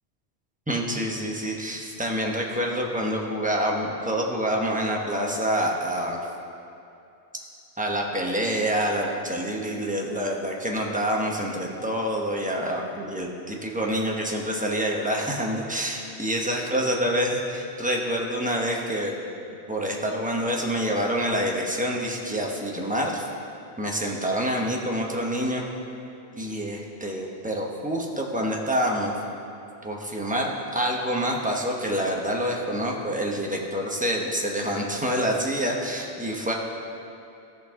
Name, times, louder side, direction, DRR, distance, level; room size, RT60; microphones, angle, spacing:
voice 1, 0.7-6.2 7.8-19.2 19.7-23.2 23.8-25.6 26.4-29.1 29.8-36.5, equal, 10° right, -1 dB, 0.9 m, -27 dB
15.0 x 6.0 x 3.7 m, 2.7 s
omnidirectional pair, 1.1 m